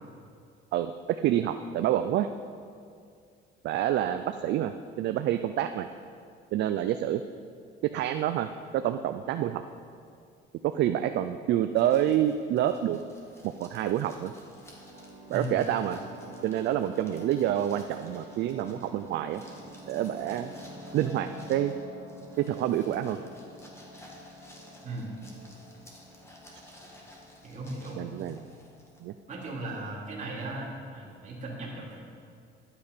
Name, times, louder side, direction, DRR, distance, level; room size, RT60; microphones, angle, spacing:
voice 1, 0.7-2.3 3.6-4.7 5.0-5.9 6.5-7.2 7.8-8.5 8.7-9.6 10.6-13.0 13.4-14.3 15.3-16.0 16.4-19.4 19.9-20.5 20.9-21.7 22.4-23.2 28.0-28.4 29.0-29.1, right 11 dB, 60° right, 9 dB, 0.4 m, -27 dB
sound 1, 11.8-29.3, left 1 dB, 15° left, 1.4 m, -55 dB
sound 2, 14.2-29.6, right 1 dB, 15° right, 1.6 m, -48 dB
voice 2, 27.4-28.0 29.3-31.9, right 2 dB, 35° right, -4 dB, 2.6 m, -37 dB
11.5 x 8.3 x 5.1 m, 2.3 s
cardioid pair, 150°, 21 cm